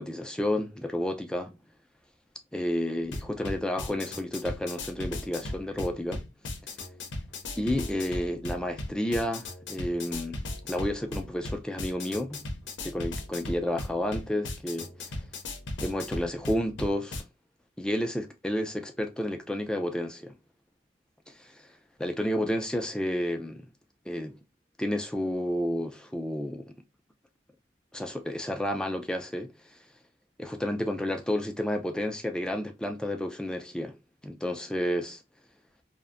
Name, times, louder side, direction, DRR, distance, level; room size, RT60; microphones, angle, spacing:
voice 1, 0.0-1.5 2.5-6.2 7.6-10.4 10.7-12.4 12.8-14.9 15.8-17.2 17.8-20.3 21.3-21.7 22.0-23.7 24.1-24.4 24.8-26.8 27.9-29.5 30.4-34.0 34.2-35.2, left 1 dB, 5° left, 0.3 m, -31 dB
sound 1, 3.0-17.2, left 1 dB, 85° left, 0.6 m, -37 dB
2.6 x 2.1 x 2.4 m
head